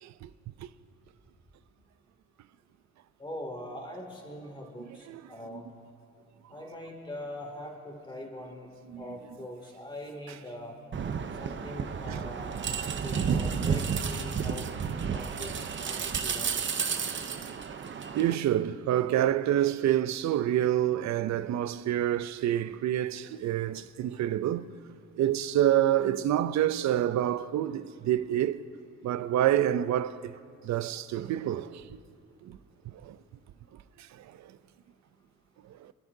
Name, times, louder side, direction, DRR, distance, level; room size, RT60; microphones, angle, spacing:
voice 1, 3.2-5.7 6.5-8.7 9.0-10.8 11.4-12.6 13.0-14.7 15.1-16.6, left 1 dB, 15° left, 2.5 m, -42 dB
sound 1, 10.9-18.3, right 6 dB, 40° right, 0.8 m, -31 dB
voice 2, 18.1-24.7 25.2-28.6 29.0-30.3 30.6-31.8 32.4-32.6 32.9-33.2 34.2-34.5 35.8-35.9, right 12 dB, 65° right, 0.6 m, -27 dB
27.5 x 11.0 x 2.7 m
cardioid pair, 90°, 30 cm